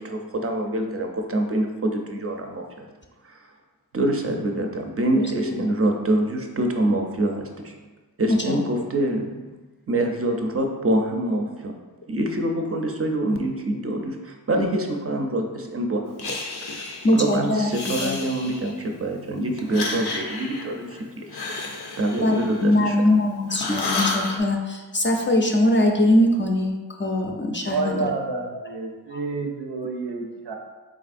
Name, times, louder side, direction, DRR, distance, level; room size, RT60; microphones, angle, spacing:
voice 1, 0.0-2.9 3.2-3.5 3.9-7.9 8.2-9.5 9.9-11.7 12.1-21.4 22.0-23.0, right 1 dB, 35° right, 2 dB, 0.5 m, -26 dB
voice 2, 5.1-5.7 8.3-8.6 17.0-18.1 22.2-28.2 29.1-29.2, left 1 dB, 30° left, 1 dB, 0.5 m, -22 dB
Breathing, 16.2-17.2 17.6-18.9 19.6-23.2 23.5-24.4, left 3 dB, 80° left, 0.5 m, -31 dB
voice 3, 27.7-30.5, right 4 dB, 85° right, 2 dB, 0.6 m, -29 dB
4.0 x 3.3 x 2.5 m, 1.3 s
wide cardioid pair, 55°, 39 cm